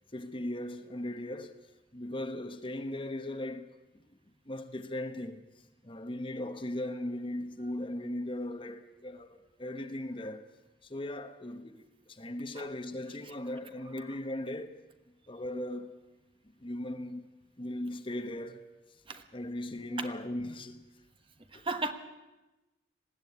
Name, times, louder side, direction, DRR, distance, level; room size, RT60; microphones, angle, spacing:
voice 1, 0.1-1.6 1.9-4.0 4.5-5.4 5.8-10.5 10.8-14.8 15.3-15.9 16.6-17.2 17.6-18.7 19.3-20.9 21.5-21.7, left 1 dB, 25° left, 1.1 m, -38 dB
voice 2, 21.5-21.9, right 3 dB, 30° right, 1.2 m, -34 dB
20.0 x 15.5 x 9.5 m
head